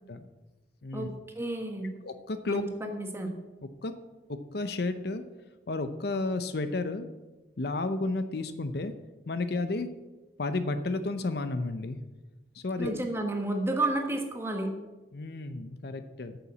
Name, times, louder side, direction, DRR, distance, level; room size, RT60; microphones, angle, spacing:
voice 1, 1.3-1.9 2.4-3.4 12.8-14.7, right 2 dB, 15° right, 3 dB, 1.3 m, -31 dB
voice 2, 2.0-2.6 3.8-3.9 4.3-5.2 5.7-7.1 7.6-8.9 9.3-9.9 10.4-12.0 12.5-12.9 15.1-16.4, left 2 dB, 60° left, 10 dB, 0.7 m, -32 dB
9.2 x 6.9 x 7.3 m, 1.1 s
head